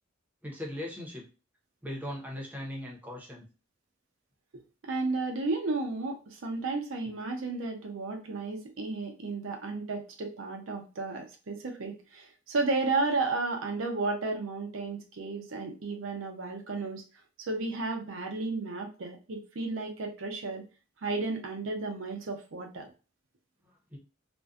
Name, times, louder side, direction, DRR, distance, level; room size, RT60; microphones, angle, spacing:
voice 1, 0.4-1.3 1.8-3.5 23.9-24.0, left 1 dB, 10° right, -2 dB, 0.7 m, -39 dB
voice 2, 4.8-17.0 17.4-20.6 21.0-22.9, right 3 dB, 70° right, 3 dB, 0.6 m, -33 dB
2.5 x 2.2 x 2.3 m, 0.33 s
head